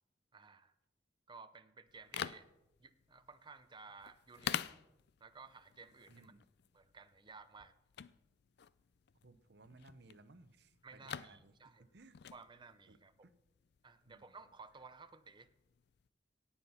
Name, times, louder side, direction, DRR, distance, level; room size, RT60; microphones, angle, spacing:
voice 1, 0.3-0.7 1.3-2.4 2.8-4.6 5.2-6.3 6.7-7.7 10.8-11.9 12.3-13.3 13.8-15.5, right 4 dB, 25° right, 11 dB, 0.7 m, -56 dB
sound 1, 1.9-16.1, left 9 dB, 65° left, 0.4 m, -48 dB
voice 2, 6.1-6.5 9.2-12.3 12.9-13.0 13.2-13.3 14.1-14.3, right 2 dB, 65° right, 13 dB, 0.8 m, -61 dB
17.5 x 7.2 x 5.7 m, 0.89 s
head